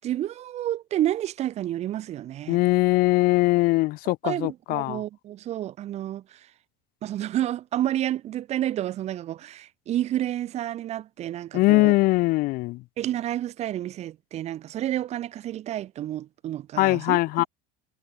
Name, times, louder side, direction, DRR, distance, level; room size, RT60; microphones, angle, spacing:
voice 1, 0.0-2.6 4.2-6.5 7.0-11.9 13.0-17.5, right 12 dB, 35° right, 8.0 m, -30 dB
voice 2, 2.5-5.0 11.5-12.8 16.8-17.4, left 21 dB, 50° left, 4.8 m, -21 dB
cardioid pair, 170°, 19 cm